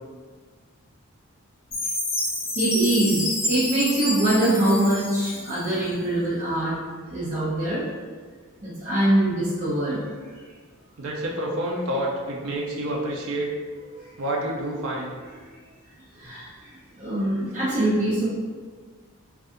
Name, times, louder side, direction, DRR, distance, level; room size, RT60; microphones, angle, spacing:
Chime, 1.7-6.0, left 1 dB, 40° left, 1.1 m, -29 dB
voice 1, 2.6-6.8 7.1-7.8 8.6-10.0 16.2-16.5 17.0-18.3, right 1 dB, 35° right, -9 dB, 0.7 m, -23 dB
voice 2, 11.0-13.5 14.2-15.1, right 1 dB, 65° right, -2 dB, 0.5 m, -28 dB
2.7 x 2.4 x 3.5 m, 1.5 s
head